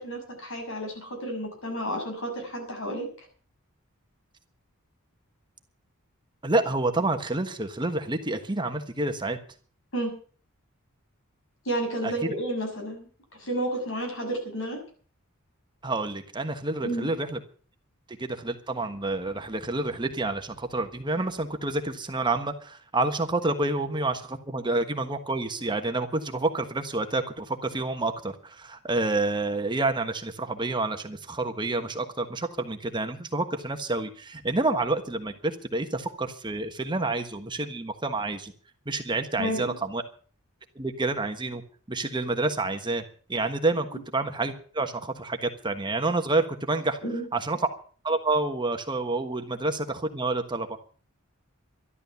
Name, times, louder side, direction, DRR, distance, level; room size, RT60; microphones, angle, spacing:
voice 1, 0.0-3.1 9.9-10.1 11.7-13.1 13.4-14.8 16.8-17.1 39.4-39.8 47.0-47.2, right 1 dB, 65° left, 3 dB, 6.9 m, -31 dB
voice 2, 6.4-9.4 12.0-12.1 15.8-17.4 18.1-38.5 38.9-40.0 40.7-41.6 41.9-43.0 43.3-47.0 47.3-47.6 48.0-50.8, right 2 dB, 20° right, 6 dB, 1.3 m, -28 dB
12.5 x 12.0 x 6.9 m, 0.43 s
head